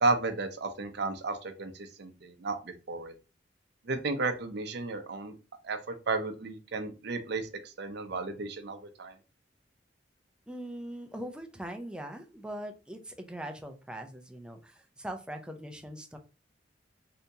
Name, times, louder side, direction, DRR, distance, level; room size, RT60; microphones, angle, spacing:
voice 1, 0.0-3.1 3.9-5.3 5.6-5.8 6.1-9.1, right 3 dB, 65° right, 8 dB, 0.6 m, -33 dB
voice 2, 10.5-16.2, right 1 dB, 5° right, 5 dB, 0.4 m, -41 dB
3.4 x 2.8 x 2.7 m, 0.32 s
head